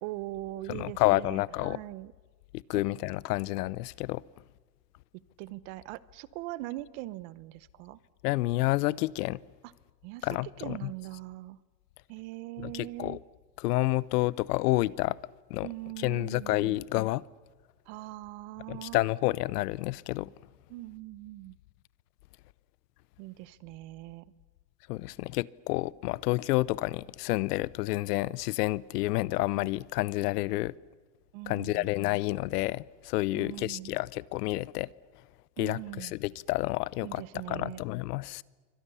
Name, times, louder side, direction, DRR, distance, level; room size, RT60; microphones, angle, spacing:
voice 1, 0.0-2.1 2.7-2.8 5.1-8.0 10.0-10.3 10.6-11.6 12.1-13.2 15.6-16.8 17.9-19.0 20.7-21.6 23.2-24.3 31.3-31.9 33.3-34.0 35.6-36.1 37.0-37.8, right 18 dB, 45° right, 18 dB, 0.8 m, -41 dB
voice 2, 0.7-1.8 2.5-4.2 8.2-9.4 10.2-10.9 12.6-13.2 13.6-15.2 15.5-15.7 16.0-17.2 18.7-20.3 24.9-30.7 31.5-34.9 35.6-37.2 37.5-38.4, left 18 dB, 80° left, 22 dB, 0.7 m, -29 dB
27.5 x 24.5 x 7.0 m, 1.4 s
supercardioid pair, 155°, 47 cm